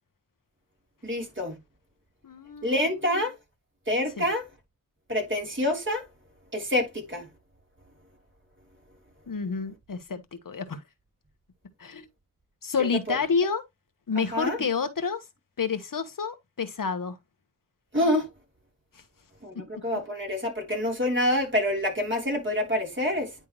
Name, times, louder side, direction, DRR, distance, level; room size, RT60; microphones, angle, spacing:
voice 1, 1.0-1.6 2.6-3.3 3.9-4.5 5.1-6.0 6.5-7.3 12.8-13.2 14.3-14.6 17.9-18.3 19.4-23.3, left 1 dB, 35° right, 3.4 m, -27 dB
voice 2, 2.2-2.9 4.2-4.3 9.3-10.8 11.8-12.1 12.6-13.6 14.1-15.2 15.6-17.2, left 5 dB, 70° left, 1.2 m, -29 dB
10.0 x 3.5 x 3.1 m
wide cardioid pair, 60°, 34 cm